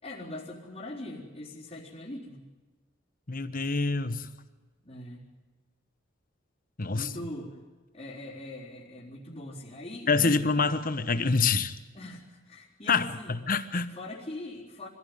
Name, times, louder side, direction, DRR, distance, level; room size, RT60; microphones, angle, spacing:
voice 1, 0.0-2.4 4.8-5.3 6.9-7.6 7.9-10.5 11.9-13.3 13.9-14.9, left 1 dB, 30° left, -8 dB, 4.1 m, -41 dB
voice 2, 3.3-4.3 6.8-7.1 10.1-11.7 12.9-14.0, left 4 dB, 45° left, 12 dB, 1.2 m, -26 dB
25.5 x 15.5 x 9.4 m, 1.3 s
head